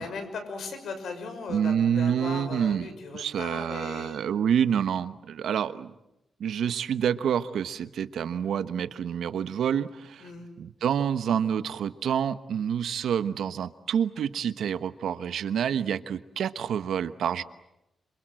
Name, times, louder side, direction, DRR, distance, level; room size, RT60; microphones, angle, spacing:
voice 1, 0.0-4.2 10.2-10.5, left 4 dB, 80° left, 7 dB, 6.2 m, -38 dB
voice 2, 1.5-5.9 6.4-10.3 10.6-17.4, right 8 dB, 90° right, 13 dB, 1.2 m, -28 dB
27.5 x 26.5 x 7.7 m, 0.87 s
wide cardioid pair, 125°, 0 cm